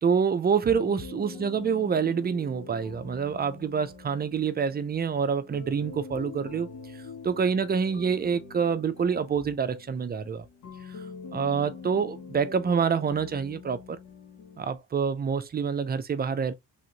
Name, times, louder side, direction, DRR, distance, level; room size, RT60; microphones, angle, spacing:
voice 1, 0.0-6.7 7.2-10.4 10.9-11.0 11.3-14.0 14.6-16.5, right 6 dB, 30° right, 0.5 m, -27 dB
sound 1, 0.7-14.8, left 4 dB, 80° left, 1.4 m, -44 dB
3.4 x 2.5 x 2.8 m
cardioid pair, 90°, 30 cm